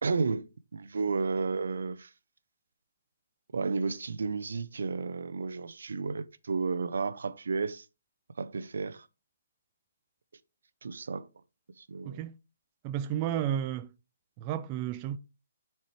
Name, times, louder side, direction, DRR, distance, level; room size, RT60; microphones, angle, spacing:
voice 1, 0.0-2.1 3.5-7.9 8.4-9.1 10.8-11.3 11.8-12.2, right 4 dB, 80° right, 0.7 m, -32 dB
voice 2, 12.0-12.3 12.8-13.9 14.4-15.2, right 10 dB, 20° right, 0.3 m, -32 dB
10.5 x 4.4 x 3.2 m
hypercardioid pair, 170°, 0 cm